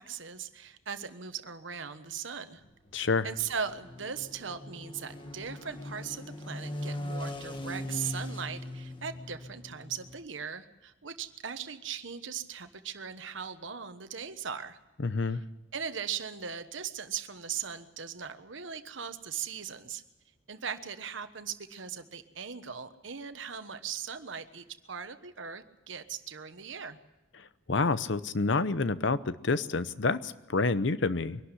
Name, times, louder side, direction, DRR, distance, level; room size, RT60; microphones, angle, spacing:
voice 1, 0.0-2.6 2.9-14.8 15.2-15.4 15.7-20.0 20.5-27.0, right 7 dB, 80° right, 10 dB, 1.2 m, -39 dB
sound 1, 2.6-10.2, left 1 dB, 25° left, 1.5 m, -40 dB
voice 2, 2.9-3.3 15.0-15.4 27.7-31.4, left 3 dB, 70° left, 14 dB, 0.8 m, -28 dB
23.0 x 12.0 x 9.8 m, 1.0 s
head